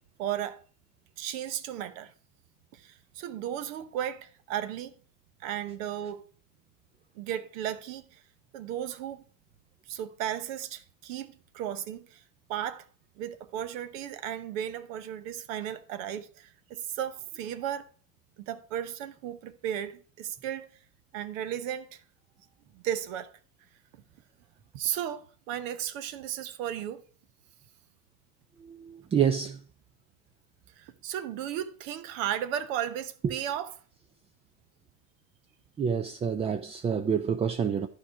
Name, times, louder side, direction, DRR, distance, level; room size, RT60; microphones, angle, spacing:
voice 1, 0.2-0.6 1.2-2.1 2.7-4.9 5.4-6.3 7.1-8.2 8.5-9.2 9.9-12.2 12.5-12.8 13.2-17.8 18.4-20.7 21.1-22.0 22.7-23.3 24.7-27.0 30.8-33.7, right 10 dB, 70° right, 0.9 m, -35 dB
voice 2, 28.6-29.6 33.2-33.3 35.8-37.9, right 7 dB, 15° right, 0.3 m, -28 dB
11.5 x 4.9 x 4.8 m
hypercardioid pair, 90°, 42 cm